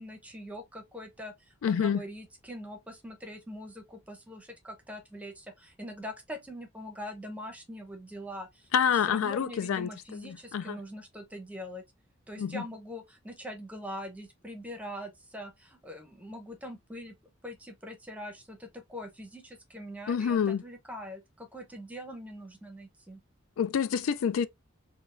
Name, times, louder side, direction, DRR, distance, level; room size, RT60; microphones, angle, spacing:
voice 1, 0.0-8.7 9.1-11.8 12.3-17.1 17.4-23.2, equal, 5° right, 0.7 m, -43 dB
voice 2, 1.6-2.0 8.7-10.8 12.4-12.7 20.1-20.6 23.6-24.5, left 7 dB, 70° left, 0.3 m, -28 dB
4.3 x 2.2 x 2.5 m
head